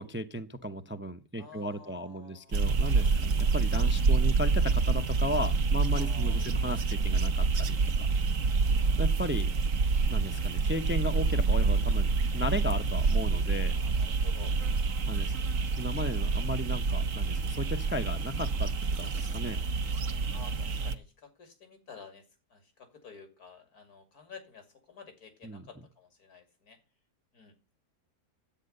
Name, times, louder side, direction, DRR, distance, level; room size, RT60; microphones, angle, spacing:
voice 1, 0.0-8.1 9.0-9.5 10.1-12.1 12.3-13.7 15.1-15.3 15.8-19.6 25.4-25.7, equal, 15° right, 8 dB, 0.5 m, -35 dB
voice 2, 1.4-3.1 3.4-3.5 5.9-6.5 8.3-8.9 13.7-14.5 15.2-15.6 20.3-22.2 22.5-26.8 27.3-27.8, left 5 dB, 80° left, 6 dB, 3.0 m, -52 dB
sound 1, 2.5-20.9, right 4 dB, 60° right, 1.4 m, -27 dB
10.5 x 8.7 x 6.6 m, 0.33 s
omnidirectional pair, 1.6 m